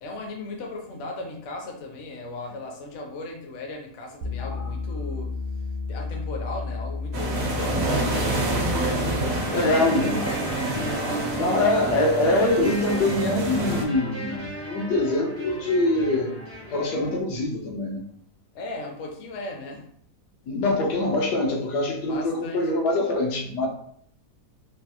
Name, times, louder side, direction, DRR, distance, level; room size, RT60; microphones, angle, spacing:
voice 1, 0.0-5.3 5.9-11.4 18.5-19.8 22.1-22.6, left 2 dB, 60° left, 1 dB, 0.7 m, -37 dB
sound 1, 4.2-9.5, left 4 dB, 80° right, 1.1 m, -32 dB
sound 2, 7.1-13.8, right 2 dB, 60° right, 0.6 m, -28 dB
sound 3, 9.3-17.2, right 1 dB, 20° right, 0.4 m, -34 dB
voice 2, 9.5-10.3 11.3-16.3 16.7-18.0 20.5-23.7, left 2 dB, 85° left, 0 dB, 1.3 m, -24 dB
3.3 x 2.3 x 2.8 m, 0.65 s
omnidirectional pair, 1.7 m